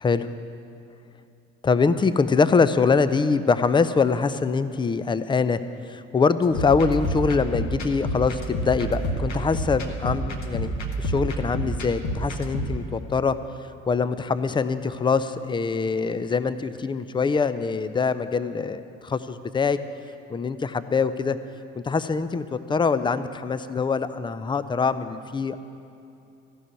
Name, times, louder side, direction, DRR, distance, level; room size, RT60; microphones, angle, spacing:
voice 1, 1.6-5.6 5.8-10.7 11.0-13.4 13.9-19.8 20.3-21.4 21.7-25.6, left 5 dB, 15° left, 13 dB, 0.5 m, -23 dB
sound 1, 6.4-12.8, right 1 dB, 45° left, 1.6 m, -29 dB
14.5 x 6.3 x 9.6 m, 2.6 s
figure-of-eight pair, 60°, 38 cm